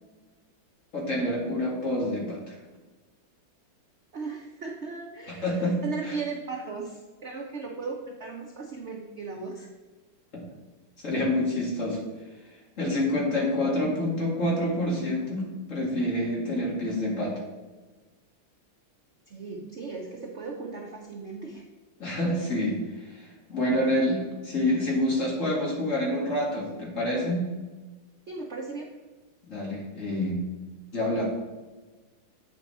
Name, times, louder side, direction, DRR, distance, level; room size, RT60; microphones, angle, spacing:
voice 1, 0.9-2.6 5.4-5.8 6.0-6.2 10.3-10.4 11.0-12.0 12.8-17.4 22.0-22.8 23.1-27.5 29.5-30.4 30.9-31.2, left 1 dB, 40° left, -3 dB, 2.1 m, -27 dB
voice 2, 4.1-9.7 12.8-13.1 19.3-21.7 28.3-28.9, right 4 dB, 75° right, 1 dB, 0.6 m, -37 dB
8.5 x 4.5 x 4.1 m, 1.3 s
omnidirectional pair, 2.2 m